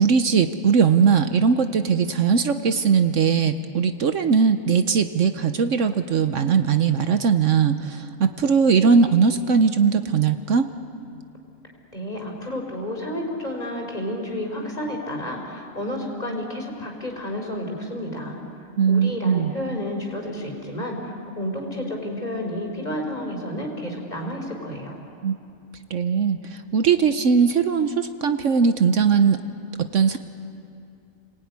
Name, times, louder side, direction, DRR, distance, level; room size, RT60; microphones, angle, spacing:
voice 1, 0.0-10.7 18.8-19.5 25.2-25.3 25.9-29.4 29.9-30.2, right 6 dB, 65° right, 8 dB, 1.2 m, -20 dB
voice 2, 11.9-18.4 18.9-25.0, left 1 dB, 30° left, 1 dB, 4.4 m, -31 dB
29.5 x 20.0 x 9.6 m, 2.6 s
omnidirectional pair, 1.4 m